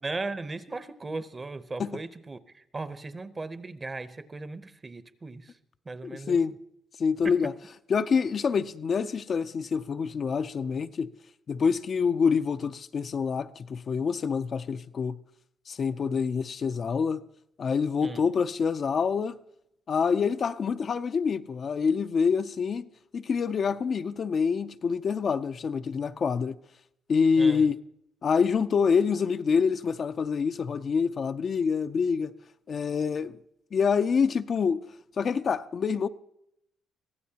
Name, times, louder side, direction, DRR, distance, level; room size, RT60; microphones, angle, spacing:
voice 1, 0.0-5.5 5.9-6.4 7.2-7.4 18.0-18.2 27.4-27.7, right 3 dB, 25° right, 0.7 m, -37 dB
voice 2, 6.0-6.5 7.0-7.5 7.9-11.1 11.5-15.2 15.7-17.2 17.6-19.4 19.9-22.9 23.1-26.6 27.1-27.8 28.2-32.3 32.7-33.3 33.7-34.8 35.2-36.1, left 6 dB, 50° left, 0.4 m, -26 dB
23.0 x 15.0 x 2.8 m
cardioid pair, 90°, 0 cm